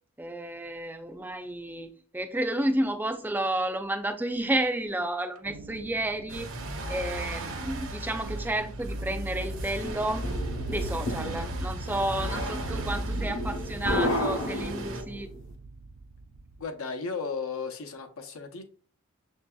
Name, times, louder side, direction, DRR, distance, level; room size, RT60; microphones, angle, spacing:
voice 1, 0.2-6.5 6.9-10.2 10.7-15.3, right 1 dB, 10° right, 0.4 m, -31 dB
sound 1, 5.4-16.6, right 3 dB, 85° right, 0.4 m, -41 dB
sound 2, 6.3-15.0, right 1 dB, 60° right, 0.7 m, -36 dB
sound 3, 9.4-15.2, left 1 dB, 50° left, 0.9 m, -33 dB
voice 2, 16.6-18.6, left 5 dB, 75° left, 0.7 m, -35 dB
6.5 x 2.7 x 2.3 m
head